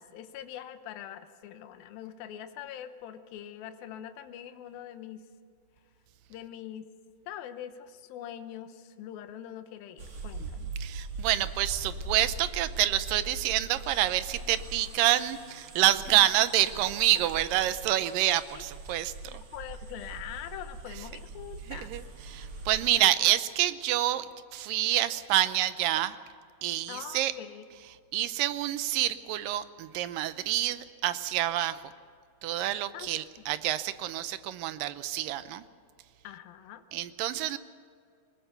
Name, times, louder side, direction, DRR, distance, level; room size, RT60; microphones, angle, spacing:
voice 1, 0.0-5.2 6.3-6.9 7.3-10.7 16.1-16.3 18.5-18.6 19.2-21.9 22.9-23.1 26.9-27.6 32.9-33.1 36.2-36.8, left 10 dB, 80° left, 9 dB, 2.8 m, -43 dB
sound 1, 10.0-22.8, right 3 dB, 55° right, 3.4 m, -41 dB
voice 2, 10.8-19.4 21.7-22.0 22.3-24.3 24.5-26.2 26.6-27.3 28.1-31.8 32.4-35.6 36.9-37.6, right 13 dB, 75° right, 13 dB, 2.3 m, -27 dB
20.5 x 20.0 x 6.8 m, 2.2 s
omnidirectional pair, 4.2 m